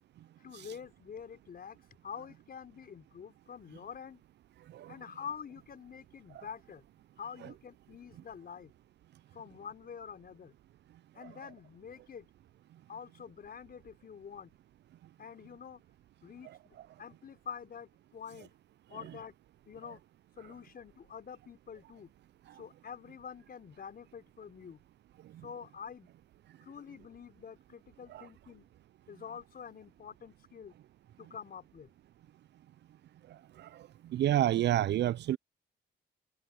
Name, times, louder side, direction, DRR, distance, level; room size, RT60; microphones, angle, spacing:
voice 1, 0.4-4.2 4.9-6.9 7.2-8.7 9.3-10.5 11.1-12.3 12.9-14.5 15.2-15.8 16.2-18.5 18.9-19.3 19.7-20.0 20.4-22.1 22.5-24.8 25.4-26.1 26.6-28.7 29.1-30.8 31.2-31.9, left 7 dB, 50° left, 5.5 m, -47 dB
voice 2, 34.1-35.4, right 12 dB, 60° right, 0.4 m, -29 dB
cardioid pair, 90°, 20 cm